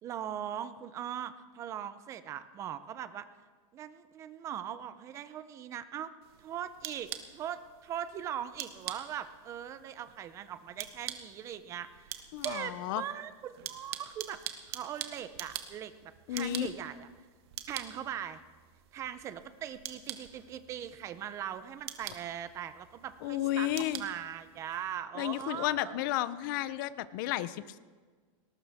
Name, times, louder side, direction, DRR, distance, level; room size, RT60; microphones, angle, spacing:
voice 1, 0.0-3.3 3.7-6.1 6.4-17.1 17.7-18.4 18.9-26.0, right 10 dB, 20° right, 12 dB, 0.6 m, -40 dB
sound 1, 6.2-25.0, right 12 dB, 50° right, 1.3 m, -46 dB
voice 2, 12.3-13.0 16.3-16.7 23.2-24.0 25.2-27.8, left 13 dB, 40° left, 16 dB, 0.6 m, -32 dB
19.0 x 19.0 x 3.5 m, 1.5 s
supercardioid pair, 170°, 16 cm